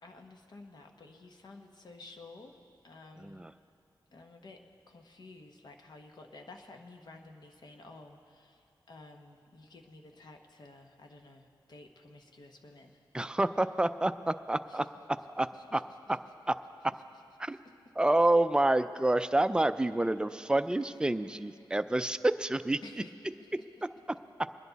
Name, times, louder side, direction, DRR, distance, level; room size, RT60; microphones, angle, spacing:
voice 1, 0.0-2.6 2.8-3.5 4.1-4.6 4.9-13.0 14.7-14.8 17.5-17.6 22.8-23.1, left 3 dB, 60° left, 4 dB, 1.1 m, -52 dB
voice 2, 3.2-3.5 13.1-15.8 16.1-16.2 16.5-16.6 17.4-17.6 18.0-22.8, right 1 dB, 10° right, 11 dB, 0.4 m, -28 dB
23.0 x 10.5 x 4.0 m, 2.5 s
wide cardioid pair, 125°, 8 cm